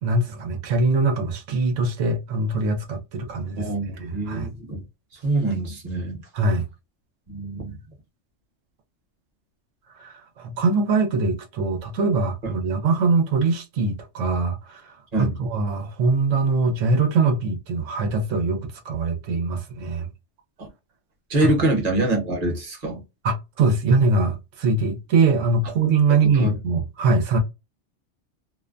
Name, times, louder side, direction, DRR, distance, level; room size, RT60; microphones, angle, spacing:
voice 1, 0.0-3.7 4.0-4.5 6.3-6.7 10.0-20.1 21.4-21.5 23.2-27.4, right 3 dB, 85° right, 1.0 m, -22 dB
voice 2, 3.6-4.8 5.2-6.2 7.3-7.8 15.1-15.3 20.6-20.7 21.3-23.0 26.2-26.5, right 2 dB, 35° right, 0.9 m, -25 dB
2.5 x 2.1 x 2.4 m
omnidirectional pair, 1.3 m